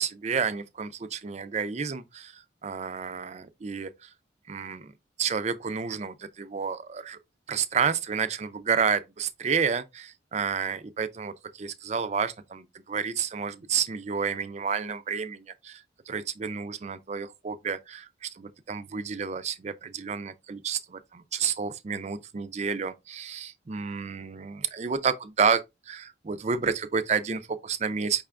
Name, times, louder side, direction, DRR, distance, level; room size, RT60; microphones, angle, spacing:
voice 1, 0.0-4.1 4.5-4.9 5.2-7.2 7.5-28.2, right 6 dB, 35° right, 0.4 m, -30 dB
5.4 x 2.4 x 3.3 m
head